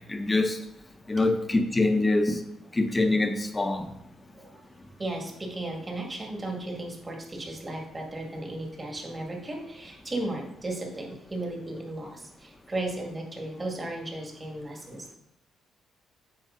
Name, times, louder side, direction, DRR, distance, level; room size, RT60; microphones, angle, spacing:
voice 1, 0.1-0.6 1.1-2.4 2.7-3.9, left 2 dB, 20° left, 6 dB, 0.9 m, -24 dB
voice 2, 5.0-15.2, right 2 dB, 25° right, 0 dB, 2.0 m, -35 dB
8.5 x 4.8 x 3.8 m, 0.82 s
cardioid pair, 90°, 0 cm